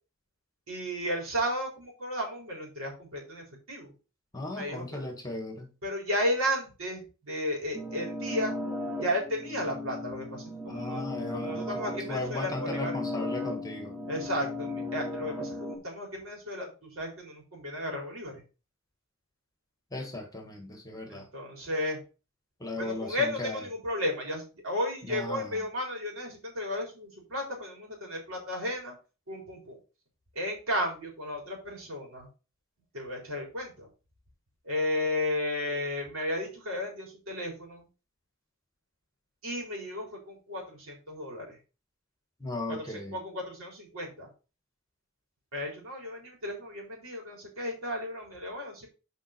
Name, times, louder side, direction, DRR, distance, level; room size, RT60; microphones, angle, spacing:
voice 1, 0.7-3.9 4.5-5.0 5.8-8.6 9.0-11.1 11.3-13.0 14.1-18.4 21.1-22.0 22.8-28.9 29.3-29.8 30.4-32.3 32.9-33.9 34.6-37.9 39.4-41.6 42.7-44.3 45.5-48.9, left 1 dB, 75° right, 3.9 m, -34 dB
voice 2, 4.3-5.7 10.7-11.7 12.1-13.9 19.9-21.3 22.6-23.6 25.0-25.6 42.4-43.1, left 2 dB, 15° left, 1.7 m, -36 dB
sound 1, 7.7-15.8, left 1 dB, 5° right, 1.3 m, -36 dB
7.7 x 5.2 x 4.3 m
head